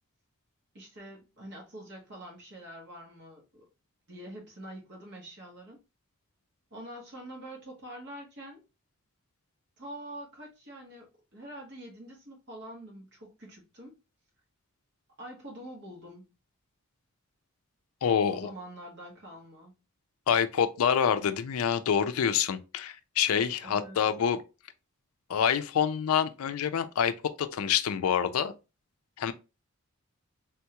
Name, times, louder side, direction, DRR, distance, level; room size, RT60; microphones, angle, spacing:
voice 1, 0.7-3.6 4.1-5.8 6.7-8.6 9.8-13.9 15.2-16.2 18.3-19.7 23.6-24.1, right 1 dB, 50° right, 1.1 m, -45 dB
voice 2, 18.0-18.5 20.3-24.4 25.3-28.5 29.2-29.3, left 8 dB, 80° left, 0.4 m, -27 dB
3.5 x 2.3 x 2.8 m
head